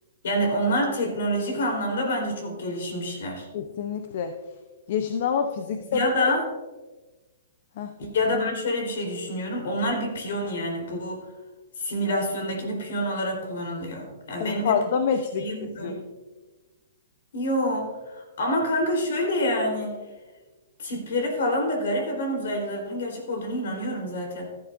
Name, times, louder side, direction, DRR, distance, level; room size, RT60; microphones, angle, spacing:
voice 1, 0.2-3.5 5.9-6.4 8.0-11.2 11.8-14.8 15.4-16.0 17.3-20.0 20.8-24.5, equal, 70° left, 2 dB, 4.0 m, -27 dB
voice 2, 3.5-4.4 4.9-6.3 7.8-7.9 14.4-15.4 15.8-15.9, left 6 dB, 50° left, 7 dB, 0.8 m, -26 dB
15.5 x 11.0 x 2.6 m, 1.2 s
hypercardioid pair, 155°, 0 cm